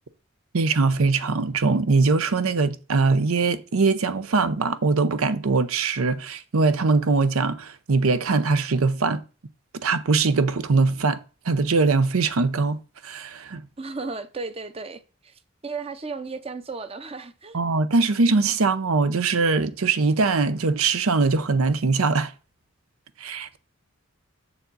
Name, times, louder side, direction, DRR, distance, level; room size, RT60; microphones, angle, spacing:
voice 1, 0.5-9.2 9.8-11.2 11.5-12.8 13.0-13.6 17.5-22.3 23.2-23.6, right 4 dB, 90° right, 0.7 m, -22 dB
voice 2, 13.8-17.6, right 4 dB, 30° right, 0.6 m, -35 dB
7.0 x 6.9 x 3.9 m
head